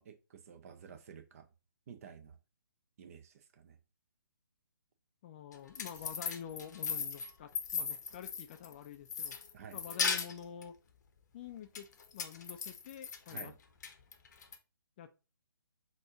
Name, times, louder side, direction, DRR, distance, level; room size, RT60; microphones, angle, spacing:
voice 1, 0.0-1.5 1.9-2.4 3.0-3.8 9.5-9.8 13.3-13.5, right 7 dB, 40° right, 0.6 m, -51 dB
voice 2, 5.2-9.4 9.7-10.7 11.3-11.9 12.1-13.5 15.0-15.2, left 9 dB, 30° left, 0.4 m, -48 dB
sound 1, 5.5-8.7 9.1-10.6 11.8-13.5 13.8-14.6, left 6 dB, 50° left, 0.7 m, -37 dB
4.2 x 2.6 x 4.4 m
figure-of-eight pair, 140°, 12 cm